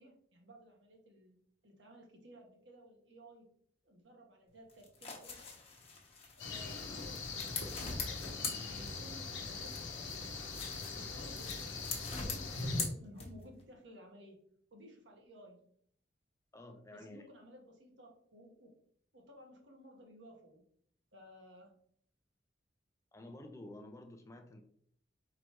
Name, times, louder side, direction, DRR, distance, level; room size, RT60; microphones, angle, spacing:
voice 1, 0.0-1.4 1.6-3.5 3.8-5.6 6.4-9.8 10.9-11.6 12.2-14.4 14.7-15.6 16.9-18.7 19.1-20.6 21.1-21.7, equal, 70° right, 1 dB, 1.3 m, -56 dB
sound 1, 4.7-9.3 9.6-13.6, left 4 dB, 35° left, 1.0 m, -43 dB
sound 2, 6.4-12.9, left 3 dB, 85° left, 0.9 m, -41 dB
voice 2, 16.5-17.3 23.1-24.6, left 1 dB, 15° left, 5 dB, 0.4 m, -51 dB
4.7 x 3.8 x 2.9 m, 0.64 s
head